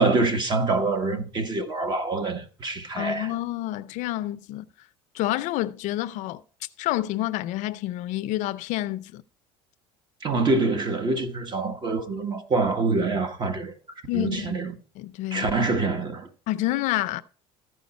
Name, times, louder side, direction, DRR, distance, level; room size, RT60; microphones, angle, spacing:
voice 1, 0.0-3.3 10.2-13.7 14.1-14.7 15.3-16.3, right 3 dB, 30° right, 1.2 m, -25 dB
voice 2, 3.0-4.7 5.1-6.4 6.8-9.2 14.1-14.6 15.0-15.5 16.5-17.2, left 15 dB, 65° left, 0.5 m, -28 dB
14.0 x 5.0 x 4.1 m
cardioid pair, 120°, 14 cm